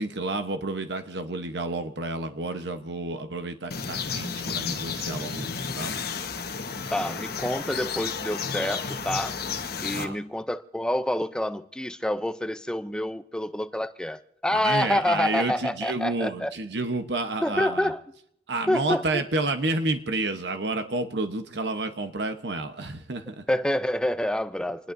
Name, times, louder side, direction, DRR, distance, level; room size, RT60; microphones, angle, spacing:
voice 1, 0.0-5.9 9.9-10.2 14.5-17.9 18.5-23.4, right 2 dB, 70° right, 1.0 m, -30 dB
sound 1, 3.7-10.1, left 5 dB, 60° left, 1.2 m, -32 dB
voice 2, 6.9-9.4 9.8-16.5 17.4-18.0 18.7-19.2 23.5-24.9, left 1 dB, 5° left, 0.5 m, -27 dB
27.0 x 19.5 x 2.6 m
head